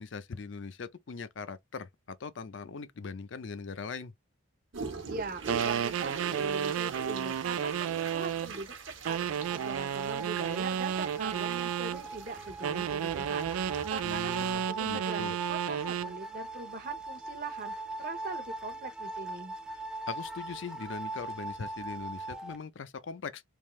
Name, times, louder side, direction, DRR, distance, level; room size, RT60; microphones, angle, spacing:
voice 1, 0.0-4.1 14.0-15.3 19.7-23.4, left 5 dB, 60° left, 0.5 m, -41 dB
sound 1, 4.7-14.5, right 4 dB, 65° right, 1.1 m, -42 dB
voice 2, 5.1-9.2 9.5-19.5, right 3 dB, 40° right, 0.7 m, -41 dB
sound 2, 5.5-8.5 9.0-12.0 12.6-16.1, right 8 dB, 85° right, 0.3 m, -32 dB
sound 3, 9.4-22.6, right 3 dB, 5° right, 0.3 m, -41 dB
3.5 x 2.7 x 3.1 m
head